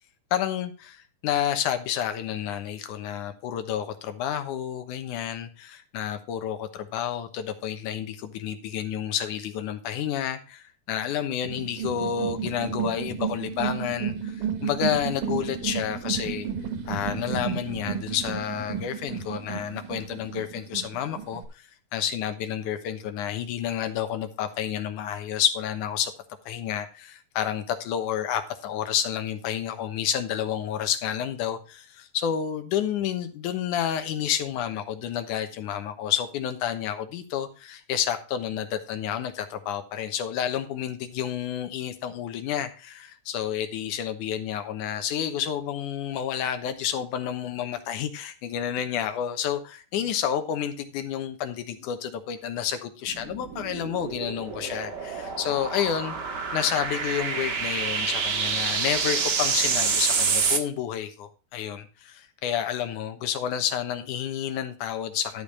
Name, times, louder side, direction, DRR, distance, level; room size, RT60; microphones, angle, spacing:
voice 1, 0.3-16.5 16.9-26.1 26.5-56.2 56.5-65.4, left 9 dB, 85° left, 2.5 m, -30 dB
sound 1, 11.4-21.4, right 7 dB, 85° right, 2.7 m, -32 dB
sound 2, 53.1-60.6, right 5 dB, 45° right, 1.4 m, -27 dB
12.0 x 5.4 x 4.8 m
omnidirectional pair, 3.5 m